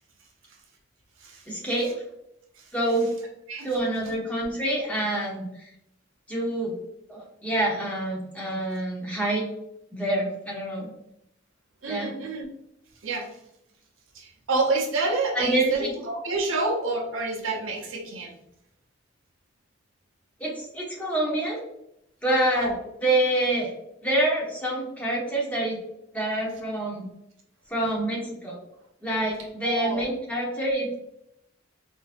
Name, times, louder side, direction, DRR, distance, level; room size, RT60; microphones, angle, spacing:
voice 1, 1.5-1.9 2.7-3.1 3.6-5.7 6.3-6.7 7.1-9.5 9.9-10.9 11.9-12.1 15.3-15.9 20.4-21.6 22.2-22.7 23.0-23.7 24.0-25.8 26.1-27.1 27.7-28.6 29.0-31.0, right 1 dB, 5° left, -4 dB, 0.8 m, -26 dB
voice 2, 11.8-12.4 13.0-13.3 14.1-18.3 22.6-22.7 29.6-30.0, right 3 dB, 90° right, 1 dB, 0.8 m, -28 dB
3.8 x 2.7 x 2.5 m, 0.80 s
head